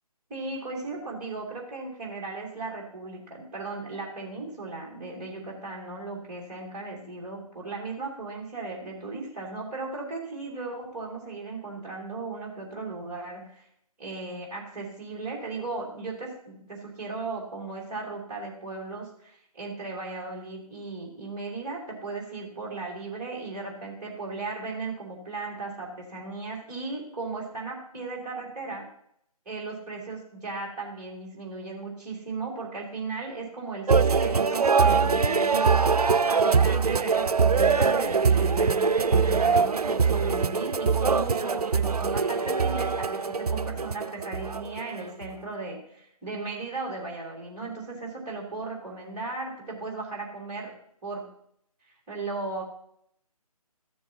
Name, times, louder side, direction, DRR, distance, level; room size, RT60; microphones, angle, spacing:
voice 1, 0.3-13.6 14.0-28.9 29.4-35.8 36.3-50.7 51.0-51.3 52.1-52.6, right 3 dB, 15° right, -4 dB, 2.8 m, -36 dB
sound 1, 33.9-45.3, right 5 dB, 80° right, 0.5 m, -23 dB
15.0 x 7.2 x 2.8 m, 0.70 s
figure-of-eight pair, 150°, 20 cm